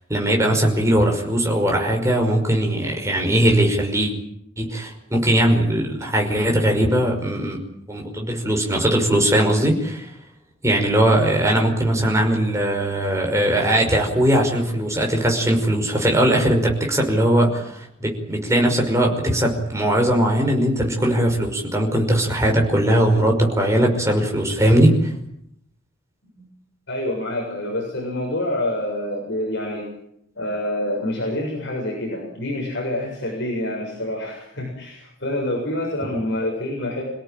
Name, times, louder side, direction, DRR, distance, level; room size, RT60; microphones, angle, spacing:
voice 1, 0.1-4.1 4.6-7.6 7.9-10.1 10.6-25.1, right 1 dB, 15° right, 1 dB, 5.6 m, -19 dB
voice 2, 26.9-29.9 30.4-37.0, left 1 dB, 55° left, -1 dB, 7.2 m, -27 dB
28.0 x 17.5 x 9.1 m, 0.74 s
head